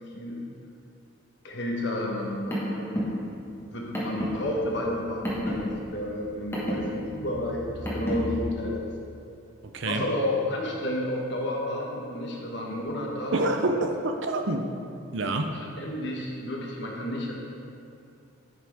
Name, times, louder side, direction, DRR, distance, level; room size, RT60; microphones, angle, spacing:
voice 1, 1.4-3.2 3.6-8.9 9.8-13.8 15.5-17.3, left 1 dB, 55° left, -1 dB, 1.2 m, -31 dB
Car, 2.2-8.4, equal, 10° left, 1.3 m, -32 dB
voice 2, 13.3-14.7 15.1-15.5, right 2 dB, 60° right, 5 dB, 0.6 m, -27 dB
9.5 x 6.0 x 3.5 m, 2.5 s
head